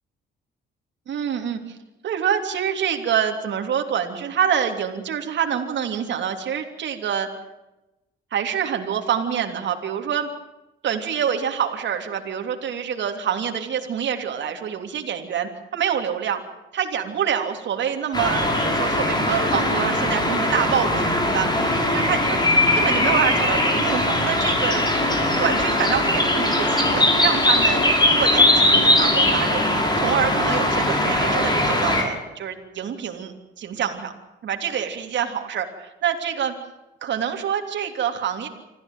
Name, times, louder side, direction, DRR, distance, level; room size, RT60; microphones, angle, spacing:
voice 1, 1.1-1.8 2.0-7.3 8.3-10.3 10.8-16.4 16.7-22.4 22.7-24.9 25.4-27.8 28.1-29.7 30.0-34.1 34.4-36.5 37.0-38.5, right 8 dB, 65° right, 4 dB, 3.3 m, -26 dB
sound 1, 18.1-32.0, left 1 dB, 20° left, 6.0 m, -20 dB
25.5 x 15.0 x 9.2 m, 1.0 s
cardioid pair, 90°, 20 cm